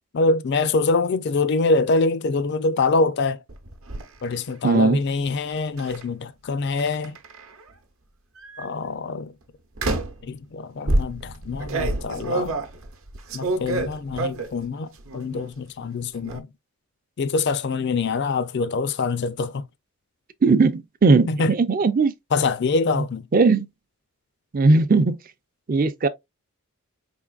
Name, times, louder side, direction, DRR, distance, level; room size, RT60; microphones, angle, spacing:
voice 1, 0.1-3.4 4.2-7.2 8.6-9.3 10.2-12.6 13.3-16.5 17.2-19.6 21.3-21.5 22.3-23.3, left 3 dB, 50° left, 0.4 m, -24 dB
sound 1, 3.5-4.0 5.8-6.0 6.8-7.6 8.4-8.7 9.8-10.3 10.9-14.6 15.0-15.5 15.8-16.4, right 2 dB, 65° right, 0.8 m, -27 dB
voice 2, 4.6-5.0 20.4-22.1 23.0-23.1 23.3-23.7 24.5-25.2 25.7-26.1, right 3 dB, 40° right, 0.4 m, -18 dB
5.0 x 3.6 x 2.3 m
head